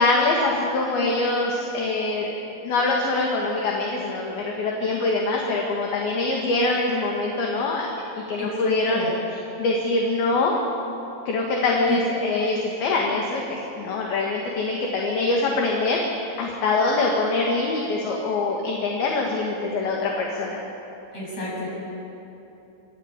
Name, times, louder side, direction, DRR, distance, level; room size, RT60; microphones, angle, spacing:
voice 1, 0.0-2.3 2.6-7.9 8.3-9.1 9.6-10.5 11.3-20.6, left 3 dB, 60° left, -1 dB, 3.2 m, -24 dB
voice 2, 8.4-9.1 21.1-21.7, left 2 dB, 30° left, -5 dB, 7.9 m, -31 dB
25.0 x 13.5 x 8.8 m, 3.0 s
omnidirectional pair, 5.4 m